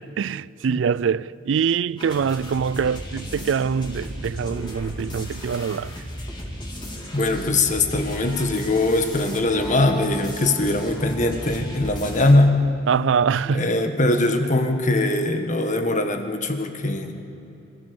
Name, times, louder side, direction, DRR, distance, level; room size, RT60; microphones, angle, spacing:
voice 1, 0.0-5.9 12.9-13.7, right 6 dB, 80° right, 0.4 m, -24 dB
sound 1, 2.0-12.3, equal, 25° left, 4.0 m, -35 dB
voice 2, 7.1-12.5 13.5-17.2, left 2 dB, 40° left, 1.5 m, -21 dB
26.5 x 15.5 x 7.0 m
head